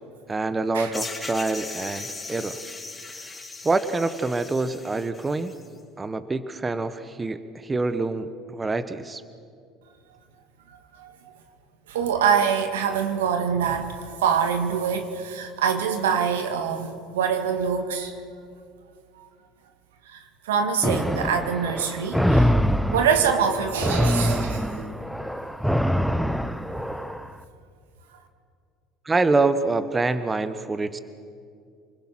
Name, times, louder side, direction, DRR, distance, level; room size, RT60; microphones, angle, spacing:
voice 1, 0.3-2.6 3.6-5.5 6.0-9.2 29.0-31.0, right 3 dB, 20° right, 12 dB, 1.2 m, -26 dB
sound 1, 0.9-5.7, left 3 dB, 15° left, 3.7 m, -38 dB
voice 2, 10.7-11.2 11.9-18.2 19.2-19.3 20.1-22.5 22.9-24.9, right 7 dB, 85° right, 6 dB, 2.0 m, -25 dB
sound 2, 20.8-27.3, equal, ahead, 1.0 m, -24 dB
29.0 x 21.0 x 6.0 m, 2.3 s
hypercardioid pair, 75°, 0 cm